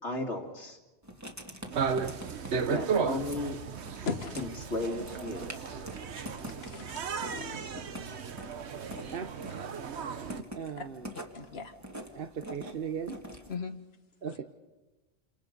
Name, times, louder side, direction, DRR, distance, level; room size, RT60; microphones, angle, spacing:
voice 1, 0.0-0.8 2.7-3.6 4.4-5.5, left 2 dB, 80° left, 2 dB, 2.9 m, -35 dB
Writing, 1.0-13.6, equal, 15° right, 2.0 m, -46 dB
sound 1, 1.7-10.4, right 6 dB, 75° right, 1.3 m, -35 dB
voice 2, 4.0-4.4 6.6-7.6 10.8-10.9 11.3-11.7 13.5-13.7, left 4 dB, 65° left, 7 dB, 1.5 m, -37 dB
voice 3, 10.5-11.1 12.1-13.2 14.2-14.4, right 7 dB, 55° right, 7 dB, 1.1 m, -37 dB
29.0 x 27.0 x 5.3 m, 1.1 s
omnidirectional pair, 1.1 m